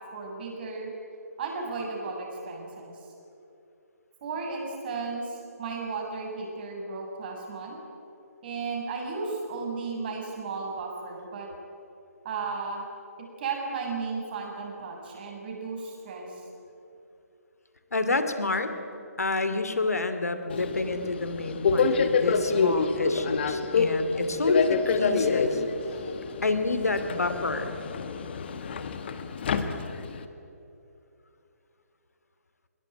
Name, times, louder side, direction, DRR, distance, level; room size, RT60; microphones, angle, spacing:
voice 1, 0.1-0.9 1.4-3.0 4.2-7.8 8.4-11.5 12.2-12.8 13.4-16.4, right 4 dB, 35° right, 0 dB, 7.1 m, -34 dB
voice 2, 17.9-18.7 19.2-25.6 26.4-27.8, left 3 dB, 70° left, 9 dB, 2.6 m, -28 dB
Subway metro underground, 20.5-30.3, left 4 dB, 40° left, 1.7 m, -27 dB
24.0 x 22.0 x 9.2 m, 2.8 s
figure-of-eight pair, 140°, 9 cm